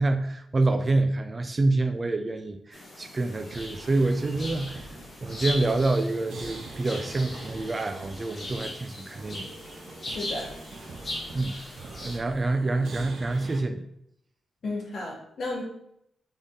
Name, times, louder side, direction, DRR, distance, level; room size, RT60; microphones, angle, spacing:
voice 1, 0.0-4.9 5.2-9.5 11.3-11.5 12.0-13.8, right 2 dB, 25° right, 8 dB, 0.4 m, -27 dB
sound 1, 2.7-12.2, left 1 dB, 30° left, 1.2 m, -39 dB
sound 2, 3.3-13.6, right 3 dB, 65° right, 0.7 m, -44 dB
voice 2, 10.1-10.5 14.6-15.6, left 2 dB, 60° left, -2 dB, 1.5 m, -33 dB
4.0 x 3.5 x 3.5 m, 0.75 s
cardioid pair, 125°, 0 cm